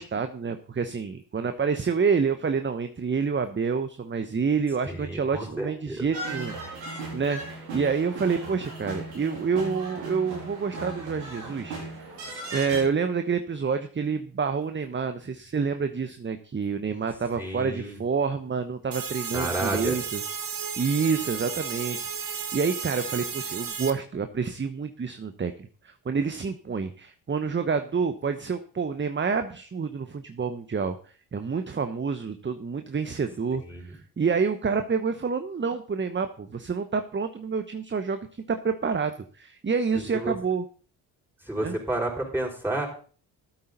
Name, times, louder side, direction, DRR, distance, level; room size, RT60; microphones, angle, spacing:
voice 1, 0.0-6.9 7.1-12.1 12.5-20.2 20.8-25.5 25.8-31.0 31.3-38.2 38.5-40.6 41.6-41.7, right 5 dB, 25° right, 9 dB, 1.0 m, -28 dB
voice 2, 4.8-6.1 17.4-18.0 19.3-20.0 33.6-34.0 40.1-40.3 41.5-42.9, right 1 dB, 5° right, -1 dB, 5.6 m, -30 dB
sound 1, 6.1-12.8, right 2 dB, 85° right, 3.6 m, -37 dB
sound 2, 18.9-23.9, right 7 dB, 40° right, 1.6 m, -33 dB
13.5 x 8.6 x 4.0 m, 0.41 s
hypercardioid pair, 45°, 49 cm